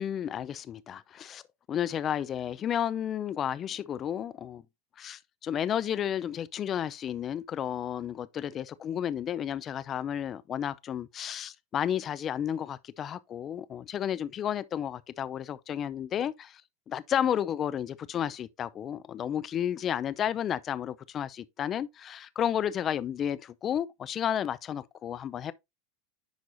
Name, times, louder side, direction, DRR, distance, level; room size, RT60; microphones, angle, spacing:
voice 1, 0.0-1.4 1.7-4.6 5.0-16.6 16.9-25.5, left 9 dB, 35° left, 0.6 m, -32 dB
10.5 x 4.7 x 2.7 m
hypercardioid pair, 110°, 0 cm